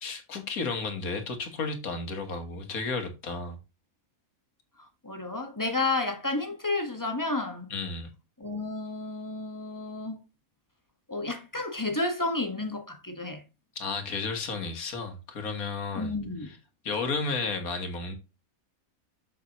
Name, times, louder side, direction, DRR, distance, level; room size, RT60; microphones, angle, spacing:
voice 1, 0.0-3.6 7.7-8.1 13.8-16.1 16.4-16.6 16.8-18.1, left 4 dB, 75° left, 1.9 m, -33 dB
voice 2, 5.0-7.7 8.4-10.2 11.1-13.4 15.9-16.5, left 2 dB, 15° left, 1.4 m, -31 dB
7.1 x 6.9 x 3.0 m
omnidirectional pair, 1.5 m